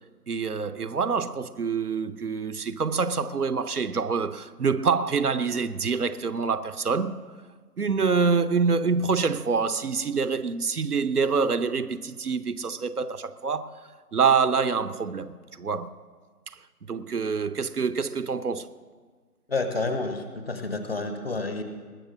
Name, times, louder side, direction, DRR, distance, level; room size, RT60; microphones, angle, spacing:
voice 1, 0.3-7.2 7.8-13.7 14.1-16.0 16.9-18.7, right 5 dB, 70° right, 0.7 m, -26 dB
voice 2, 19.5-21.6, left 3 dB, 40° left, 1.1 m, -29 dB
20.0 x 6.6 x 6.4 m
figure-of-eight pair, 155°, 47 cm